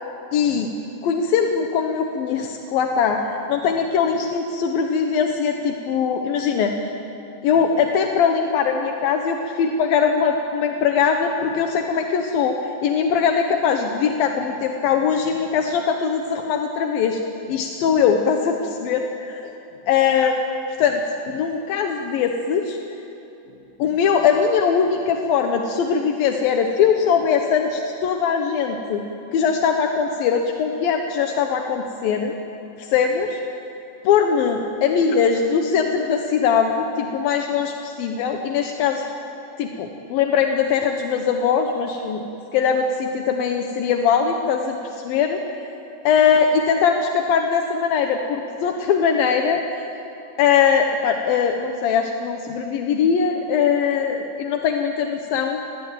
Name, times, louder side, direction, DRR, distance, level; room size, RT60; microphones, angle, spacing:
voice 1, 0.3-0.7 1.0-6.8 7.4-12.6 12.8-17.2 17.5-19.5 19.9-20.4 20.8-22.8 23.8-29.0 29.3-32.3 32.8-33.4 34.0-39.1 39.6-42.2 42.5-44.8 45.0-45.4 46.0-49.6 50.4-55.6, left 6 dB, 70° left, 3 dB, 2.3 m, -21 dB
26.5 x 21.0 x 9.0 m, 2.9 s
omnidirectional pair, 5.6 m